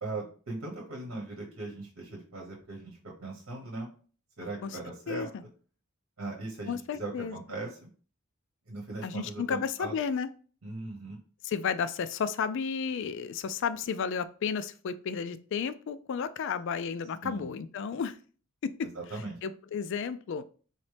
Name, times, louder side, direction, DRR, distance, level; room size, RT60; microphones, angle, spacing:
voice 1, 0.0-3.9 4.4-5.3 6.2-7.9 8.7-9.9 10.6-11.2 17.2-17.5 18.8-19.4, right 2 dB, 75° right, -1 dB, 1.1 m, -39 dB
voice 2, 6.7-7.3 9.0-10.3 11.4-18.2 18.6-18.9 19.4-20.4, left 6 dB, 60° left, 12 dB, 0.3 m, -32 dB
4.1 x 3.0 x 3.3 m, 0.40 s
head